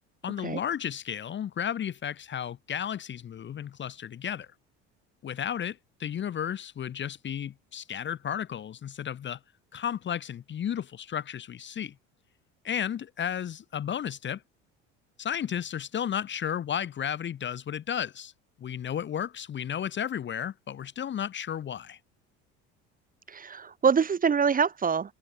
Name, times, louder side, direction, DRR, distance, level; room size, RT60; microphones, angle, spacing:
voice 1, 0.2-4.5 5.2-9.4 9.7-11.9 12.6-14.4 15.2-18.3 18.6-22.0, left 9 dB, 35° left, 0.9 m, -33 dB
voice 2, 23.3-25.1, right 6 dB, 25° right, 1.0 m, -25 dB
hypercardioid pair, 75°, 34 cm